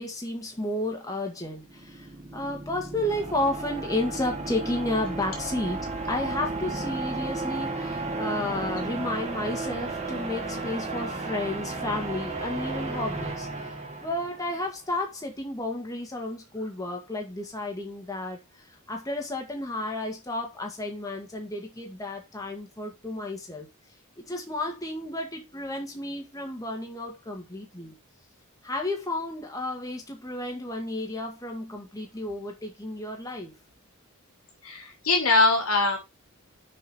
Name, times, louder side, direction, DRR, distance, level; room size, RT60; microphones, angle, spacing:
voice 1, 0.0-23.7 24.2-27.9 28.6-33.6, left 1 dB, 15° left, 1.9 m, -32 dB
sound 1, 1.4-14.6, right 3 dB, 30° right, 1.7 m, -34 dB
voice 2, 34.6-36.0, left 3 dB, 70° left, 2.7 m, -22 dB
6.8 x 5.5 x 5.7 m
head